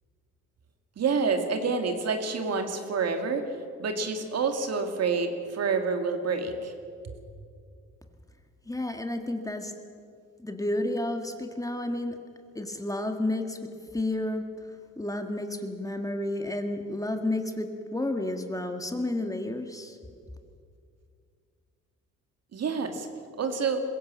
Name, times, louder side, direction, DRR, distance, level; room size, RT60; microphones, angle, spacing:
voice 1, 1.0-3.5 3.8-6.7 22.5-23.1 23.4-23.8, right 5 dB, 55° right, 6 dB, 2.3 m, -28 dB
voice 2, 8.6-9.7 10.4-12.2 12.5-14.5 15.0-20.0, left 1 dB, 10° left, 5 dB, 1.7 m, -31 dB
22.0 x 16.0 x 7.5 m, 2.3 s
cardioid pair, 90°, 30 cm